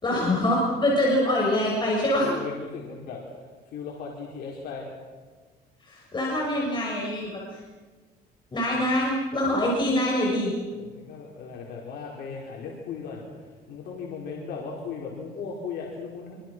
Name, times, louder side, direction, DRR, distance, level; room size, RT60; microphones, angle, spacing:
voice 1, 0.0-2.3 5.8-7.6 8.5-10.5, left 1 dB, 25° left, -3 dB, 6.4 m, -24 dB
voice 2, 2.2-3.2 3.7-4.9 8.8-8.9 10.7-16.4, left 5 dB, 70° left, -2 dB, 5.0 m, -37 dB
27.0 x 24.5 x 6.4 m, 1.4 s
cardioid pair, 110°, 17 cm